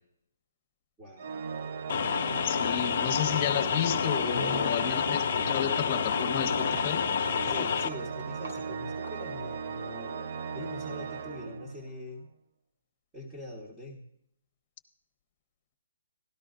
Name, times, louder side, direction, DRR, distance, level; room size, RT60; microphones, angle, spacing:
voice 1, 1.0-1.3 4.3-5.1 7.4-12.3 13.1-14.1, left 1 dB, 15° right, 1.3 m, -43 dB
Organ, 1.2-12.1, right 6 dB, 50° right, 0.5 m, -37 dB
sound 1, 1.9-7.9, left 8 dB, 50° left, 0.3 m, -29 dB
voice 2, 2.4-7.1, left 9 dB, 30° left, 1.1 m, -32 dB
Walk footsteps, 3.3-3.4 3.7-9.8, right 1 dB, 80° right, 2.9 m, -47 dB
13.5 x 12.0 x 2.5 m
hypercardioid pair, 155°, 0 cm